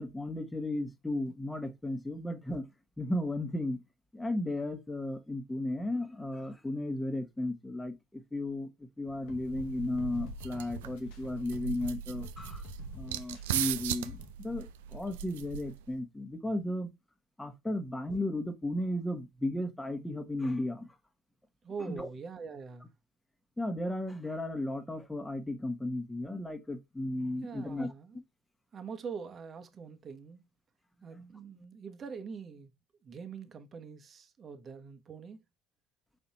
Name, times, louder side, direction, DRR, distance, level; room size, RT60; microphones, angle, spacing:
voice 1, 0.0-2.7 3.0-3.8 4.1-8.7 9.0-12.6 12.9-16.9 17.4-20.9 21.8-22.1 23.6-27.9 31.1-31.3 31.6-31.7, left 1 dB, 10° left, 1.3 m, -35 dB
sound 1, 9.1-14.3, left 8 dB, 70° left, 1.2 m, -50 dB
sound 2, 9.3-16.0, right 11 dB, 80° right, 0.4 m, -39 dB
voice 2, 21.6-22.9 27.4-28.2 28.7-30.5 31.0-32.7 33.0-35.4, right 5 dB, 40° right, 1.2 m, -44 dB
5.7 x 4.2 x 4.2 m
hypercardioid pair, 70°, 0 cm